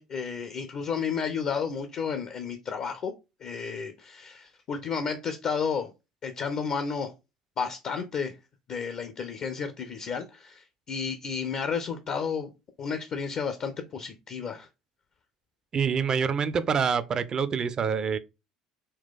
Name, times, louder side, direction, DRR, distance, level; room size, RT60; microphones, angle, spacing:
voice 1, 0.0-3.1 3.4-5.9 6.2-7.1 7.6-8.4 8.7-12.5 12.8-14.7, left 6 dB, 40° left, 0.5 m, -32 dB
voice 2, 15.7-18.2, right 6 dB, 30° right, 0.4 m, -26 dB
4.2 x 2.3 x 3.6 m
figure-of-eight pair, 65°, 2 cm